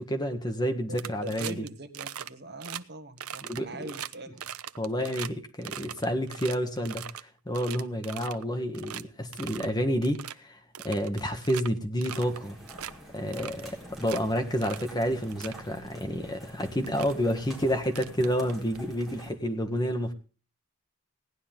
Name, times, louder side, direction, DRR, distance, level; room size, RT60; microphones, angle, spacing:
voice 1, 0.0-1.6 3.4-3.9 4.8-10.6 10.8-12.6 13.1-20.1, equal, 20° left, 5 dB, 1.6 m, -29 dB
sound 1, 0.9-1.7 1.9-2.3 2.6-2.8 3.2-5.3 5.6-7.2 7.5-8.4 8.7-9.0 9.3-9.7 10.0-10.3 10.7-11.7 12.0-12.4 12.7-12.9 13.3-14.2 14.6-14.9 15.2-15.6 16.4-16.5 16.8-17.1 17.8-18.8, right 9 dB, 85° right, 0.8 m, -40 dB
voice 2, 1.2-4.4, right 1 dB, 50° right, 8 dB, 1.5 m, -42 dB
sound 2, 12.1-19.3, equal, ahead, 4.1 m, -48 dB
17.5 x 11.0 x 3.7 m, 0.37 s
head